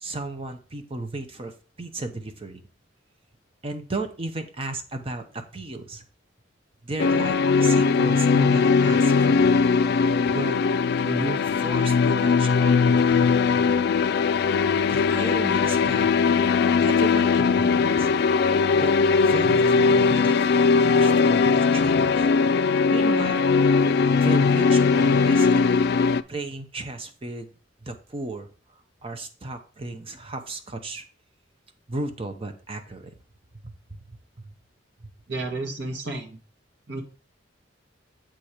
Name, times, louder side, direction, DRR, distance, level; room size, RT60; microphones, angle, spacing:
voice 1, 0.0-2.6 3.6-6.0 6.8-9.5 10.3-10.6 11.1-13.3 14.9-16.1 16.8-18.1 18.8-20.5 20.8-22.3 22.9-23.5 24.1-25.8 26.3-27.5 27.8-28.5 29.0-31.0 31.9-33.1 33.6-33.7 34.1-34.2 35.0-35.1, right 2 dB, 30° right, 7 dB, 0.8 m, -34 dB
sound 1, 7.0-26.2, left 5 dB, 55° left, 0.3 m, -20 dB
voice 2, 35.3-36.4 36.9-37.0, right 2 dB, 65° right, 2 dB, 1.5 m, -32 dB
7.6 x 4.4 x 4.9 m, 0.37 s
head